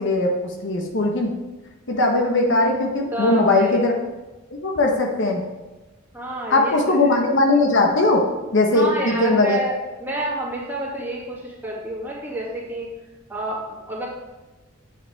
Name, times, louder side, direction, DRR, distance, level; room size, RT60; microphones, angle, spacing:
voice 1, 0.0-1.3 1.9-3.9 4.6-5.4 6.5-8.3 8.5-9.6, left 2 dB, 60° left, 1 dB, 1.3 m, -19 dB
voice 2, 3.1-3.8 6.1-7.2 8.7-9.7 10.0-12.9 13.3-14.1, right 1 dB, 10° right, -5 dB, 2.6 m, -29 dB
9.9 x 8.1 x 3.6 m, 1.1 s
head